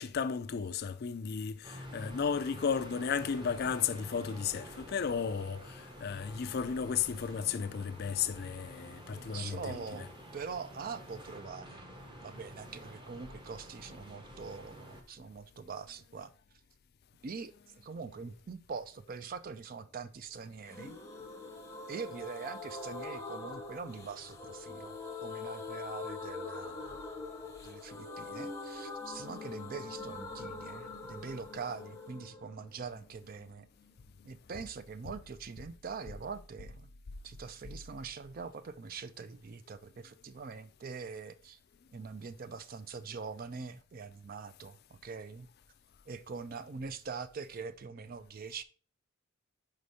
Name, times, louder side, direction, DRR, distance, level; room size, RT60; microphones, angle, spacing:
voice 1, 0.0-9.8, left 6 dB, 45° left, 0.4 m, -34 dB
sound 1, 1.6-15.0, equal, 20° right, 0.9 m, -49 dB
voice 2, 9.1-11.8 12.2-16.3 17.2-21.0 21.9-27.0 27.6-33.7 34.2-36.9 37.2-41.6 41.9-45.5 46.1-48.6, right 5 dB, 40° right, 0.4 m, -43 dB
sound 2, 20.7-34.3 34.5-34.6 34.9-35.0, left 3 dB, 15° left, 0.7 m, -44 dB
5.2 x 4.9 x 4.0 m
head